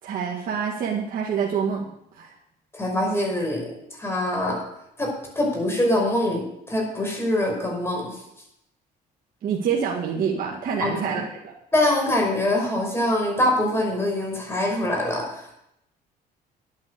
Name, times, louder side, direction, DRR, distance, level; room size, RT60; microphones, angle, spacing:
voice 1, 0.0-1.9 2.1-2.3 9.4-11.5, right 7 dB, 55° right, -2 dB, 1.9 m, -26 dB
voice 2, 2.7-3.7 4.0-4.6 5.0-8.2 10.8-11.1 11.7-15.6, left 1 dB, 15° left, 0 dB, 5.4 m, -24 dB
10.5 x 9.5 x 6.6 m, 0.80 s
cardioid pair, 110°, 17 cm